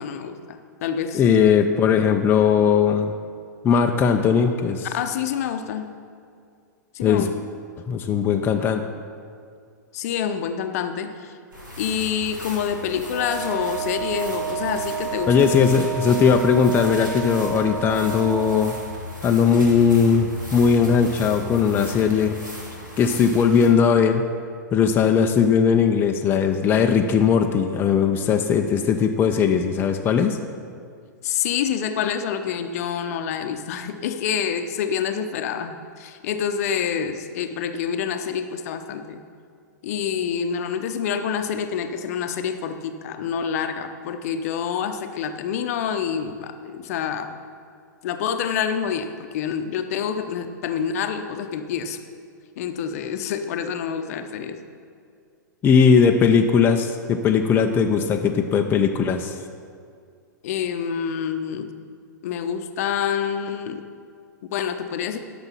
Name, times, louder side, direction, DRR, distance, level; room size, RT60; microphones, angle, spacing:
voice 1, 0.0-1.3 4.9-5.9 6.9-7.3 9.9-11.3 11.8-15.3 31.2-39.2 39.8-47.4 48.0-52.0 52.6-54.6 60.4-61.7 62.2-63.8 64.5-65.2, left 7 dB, 50° left, 8 dB, 0.8 m, -27 dB
voice 2, 1.1-3.1 3.6-4.9 7.0-7.3 7.9-8.8 15.3-18.8 19.2-22.4 23.0-24.2 24.7-30.4 55.6-59.4, left 6 dB, 20° left, 4 dB, 0.5 m, -19 dB
sound 1, 11.5-23.7, left 1 dB, 90° right, 2.4 m, -37 dB
Wind instrument woodwind instrument, 13.1-18.8, right 8 dB, 15° right, 1.5 m, -31 dB
11.5 x 6.1 x 5.6 m, 2.2 s
figure-of-eight pair, 110°, 10 cm